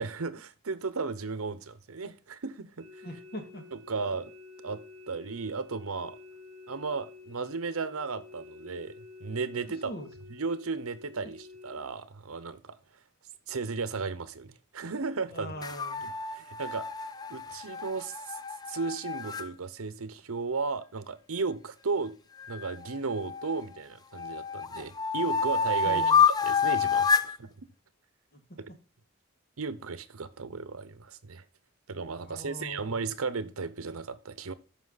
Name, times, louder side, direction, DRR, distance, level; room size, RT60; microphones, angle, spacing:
voice 1, 0.0-2.9 3.7-4.3 4.6-4.8 5.1-6.2 6.7-9.9 10.3-12.7 13.5-15.5 16.0-16.9 17.3-18.4 18.7-22.2 22.5-26.1 26.4-27.7 28.6-28.7 29.6-31.4 31.9-34.5, right 4 dB, 85° right, 0.8 m, -35 dB
sound 1, 2.8-11.8, left 3 dB, 30° right, 5.7 m, -50 dB
voice 2, 3.0-3.7 9.6-10.1 15.3-16.0 25.8-26.2 28.3-28.4 32.2-32.9, equal, 45° left, 2.1 m, -41 dB
sound 2, 15.6-19.5 22.4-23.7 24.2-27.4, left 5 dB, 20° left, 0.3 m, -28 dB
12.5 x 5.2 x 4.0 m
head